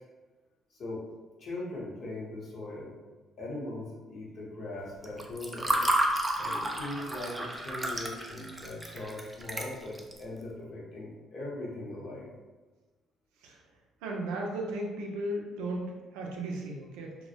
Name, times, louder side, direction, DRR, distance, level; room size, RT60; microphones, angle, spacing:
voice 1, 0.7-1.1 1.4-2.9 3.4-5.8 6.4-12.3, left 2 dB, 60° left, -4 dB, 0.8 m, -40 dB
Water / Fill (with liquid), 5.0-10.2, right 1 dB, 15° right, 0.4 m, -31 dB
voice 2, 14.0-17.2, right 1 dB, 85° right, 0 dB, 0.4 m, -35 dB
2.1 x 2.0 x 2.8 m, 1.3 s
supercardioid pair, 60°, 0 cm